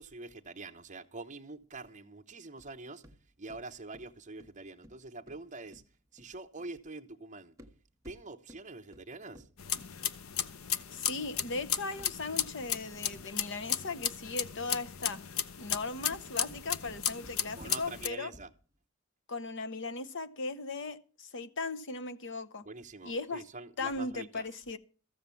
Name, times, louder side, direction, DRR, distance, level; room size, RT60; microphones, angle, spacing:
voice 1, 0.0-3.0 3.4-5.8 6.1-7.5 8.0-9.5 17.5-18.5 22.6-24.6, right 3 dB, 35° right, 0.9 m, -45 dB
sound 1, 2.6-6.8 7.5-10.5 11.3-13.5 15.5-18.8, equal, 15° right, 1.2 m, -58 dB
sound 2, 9.6-18.1, left 9 dB, 85° left, 0.7 m, -35 dB
voice 2, 10.9-15.2 15.5-18.3 19.3-22.6 23.0-23.4 23.8-24.8, left 3 dB, 60° left, 0.9 m, -38 dB
14.0 x 7.6 x 6.9 m
head